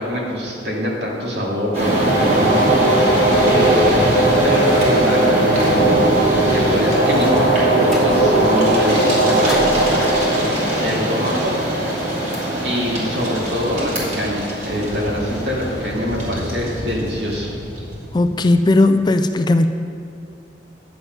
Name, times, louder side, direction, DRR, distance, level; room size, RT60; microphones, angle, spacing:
voice 1, 0.0-3.1 3.5-4.0 4.4-5.3 6.5-9.6 10.8-11.5 12.6-17.5, equal, 70° right, -3 dB, 2.3 m, -24 dB
sound 1, 1.7-18.5, right 1 dB, 40° right, 2.5 m, -18 dB
sound 2, 7.8-8.5 9.5-11.7, left 1 dB, ahead, 1.6 m, -33 dB
voice 2, 18.1-19.7, left 2 dB, 25° left, 8 dB, 0.3 m, -16 dB
10.5 x 7.8 x 5.3 m, 2.3 s
head